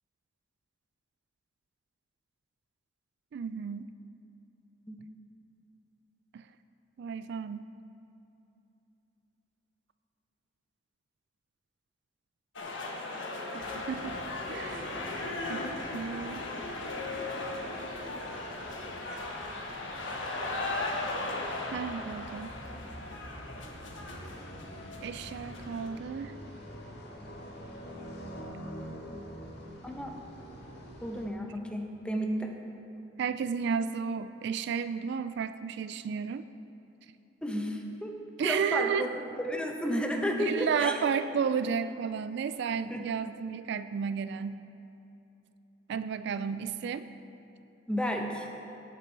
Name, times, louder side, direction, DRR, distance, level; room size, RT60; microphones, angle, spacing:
voice 1, 3.3-3.9 6.3-6.5 7.0-7.7 13.5-14.2 14.5-15.0 15.5-15.7 15.9-16.4 21.7-22.5 25.0-26.4 33.2-36.5 38.4-39.2 40.4-44.6 45.9-47.1, right 6 dB, 65° right, 12 dB, 0.3 m, -32 dB
sound 1, 12.6-25.9, left 2 dB, 85° left, 1.3 m, -37 dB
sound 2, 13.6-31.3, equal, 65° left, 1.8 m, -47 dB
voice 2, 14.4-15.8 29.8-30.2 31.0-32.5 37.4-38.1 38.4-39.1 39.4-41.0 42.9-43.1 47.9-48.5, equal, 5° left, 2 dB, 1.0 m, -33 dB
17.0 x 6.8 x 4.7 m, 2.9 s
head